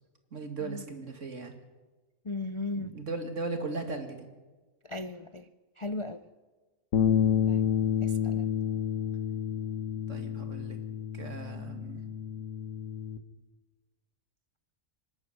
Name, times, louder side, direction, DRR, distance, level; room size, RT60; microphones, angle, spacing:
voice 1, 0.3-1.5 2.7-4.3 10.1-10.8 11.1-12.1, right 3 dB, 65° right, 5 dB, 2.5 m, -37 dB
voice 2, 2.2-3.0 4.8-5.5 5.8-6.3 7.5-7.6 8.0-8.5, left 2 dB, 40° left, 10 dB, 0.5 m, -37 dB
sound 1, 6.9-13.2, left 8 dB, 80° left, 1.5 m, -29 dB
24.5 x 11.0 x 9.8 m, 1.3 s
omnidirectional pair, 1.4 m